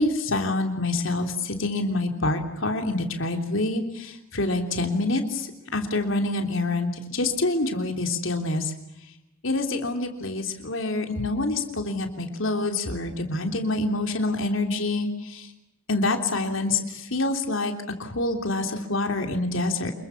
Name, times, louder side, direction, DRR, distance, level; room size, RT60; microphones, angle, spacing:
voice 1, 0.0-8.7 9.4-15.5 15.9-17.7 18.0-19.9, left 2 dB, 65° left, 4 dB, 3.3 m, -26 dB
28.0 x 22.5 x 7.2 m, 0.88 s
head